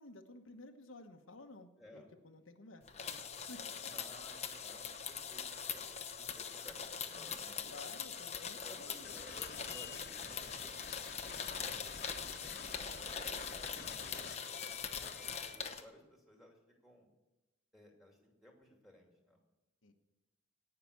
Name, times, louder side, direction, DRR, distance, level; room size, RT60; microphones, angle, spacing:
voice 1, 0.0-3.2 3.5-3.6 7.6-9.2 14.5-15.2 19.8-19.9, left 2 dB, 90° left, 4 dB, 1.2 m, -54 dB
voice 2, 1.8-2.1 3.7-5.8 6.2-7.7 8.3-10.8 11.3-14.0 14.6-17.1 17.7-19.4, equal, ahead, 0 dB, 2.6 m, -59 dB
sound 1, 2.9-15.8, left 7 dB, 35° left, 0.9 m, -42 dB
sound 2, 9.0-15.7, left 4 dB, 50° left, 1.3 m, -50 dB
17.5 x 5.9 x 8.2 m, 1.0 s
head